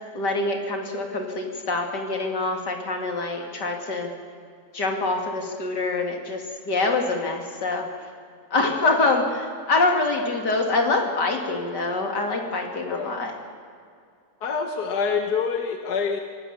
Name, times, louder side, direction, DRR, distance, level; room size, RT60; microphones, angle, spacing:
voice 1, 0.1-4.1 4.7-7.9 8.5-13.3, left 3 dB, 90° left, 2 dB, 3.3 m, -25 dB
voice 2, 12.9-13.2 14.4-16.2, left 5 dB, 70° left, 4 dB, 1.7 m, -26 dB
26.0 x 18.0 x 7.1 m, 2.3 s
omnidirectional pair, 1.8 m